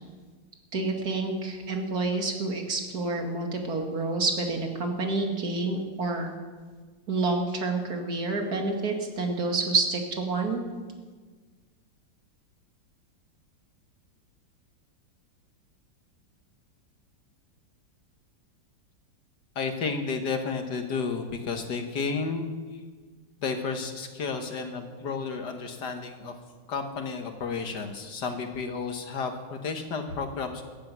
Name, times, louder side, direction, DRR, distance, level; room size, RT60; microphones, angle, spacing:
voice 1, 0.7-6.3 7.1-10.6, right 3 dB, 50° right, 3 dB, 2.6 m, -28 dB
voice 2, 19.6-22.8 23.4-26.3 26.7-30.6, left 4 dB, 65° left, 6 dB, 1.9 m, -32 dB
15.0 x 9.8 x 9.2 m, 1.4 s
omnidirectional pair, 2.1 m